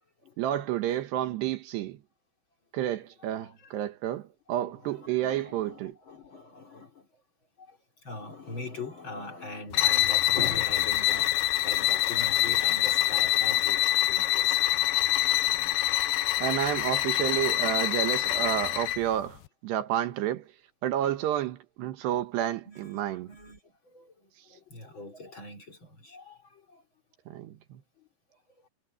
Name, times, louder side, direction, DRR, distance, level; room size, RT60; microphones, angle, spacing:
voice 1, 0.4-2.0 2.7-5.9 16.4-20.5 20.8-23.3 27.3-27.8, right 12 dB, 75° right, 3.3 m, -30 dB
voice 2, 3.4-3.8 4.5-7.2 7.6-15.8 18.0-18.1 22.7-26.8 28.0-28.1 28.6-28.7, left 2 dB, 30° left, 3.6 m, -43 dB
sound 1, 9.7-19.1, left 15 dB, 75° left, 2.4 m, -25 dB
omnidirectional pair, 4.9 m